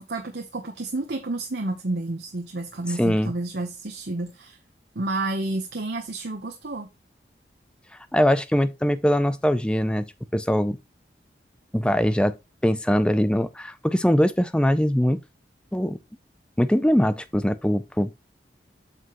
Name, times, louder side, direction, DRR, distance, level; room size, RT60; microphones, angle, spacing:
voice 1, 0.1-4.6 4.9-6.9, right 2 dB, 75° right, 0.9 m, -30 dB
voice 2, 3.0-3.3 8.1-10.8 11.7-12.3 12.6-15.2 15.7-16.0 16.6-18.3, equal, 5° left, 0.4 m, -22 dB
8.0 x 5.8 x 3.0 m
head